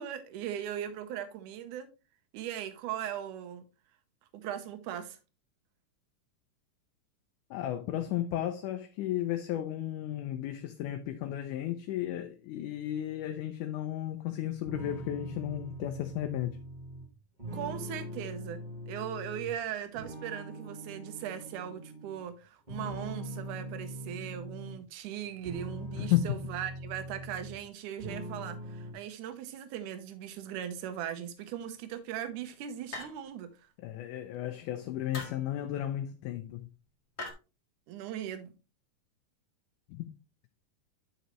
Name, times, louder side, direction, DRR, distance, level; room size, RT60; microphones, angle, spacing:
voice 1, 0.0-1.9 2.3-3.7 4.3-5.2 17.5-33.5 37.9-38.5, right 10 dB, 70° right, 2.3 m, -39 dB
voice 2, 7.5-16.6 26.0-26.2 33.8-36.7 39.9-40.1, left 13 dB, 75° left, 2.0 m, -34 dB
sound 1, 14.6-19.5 19.9-22.2 22.7-24.8 25.3-27.7 28.0-28.9, right 1 dB, 20° right, 1.6 m, -42 dB
sound 2, 32.9-33.5 35.1-35.5 37.2-37.3, left 2 dB, 35° left, 1.5 m, -41 dB
10.0 x 5.5 x 3.1 m
omnidirectional pair, 3.9 m